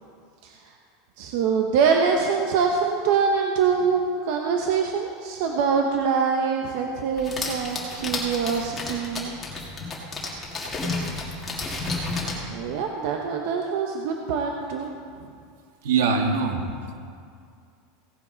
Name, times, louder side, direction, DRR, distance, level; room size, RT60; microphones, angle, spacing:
voice 1, 0.4-0.7 1.2-9.4 12.5-14.9, right 6 dB, 60° right, 2 dB, 0.9 m, -24 dB
sound 1, 7.2-12.4, left 3 dB, 10° left, 2.0 m, -31 dB
voice 2, 15.8-17.0, right 5 dB, 80° right, 3 dB, 1.7 m, -23 dB
17.0 x 9.6 x 4.0 m, 2.3 s
supercardioid pair, 160°, 0 cm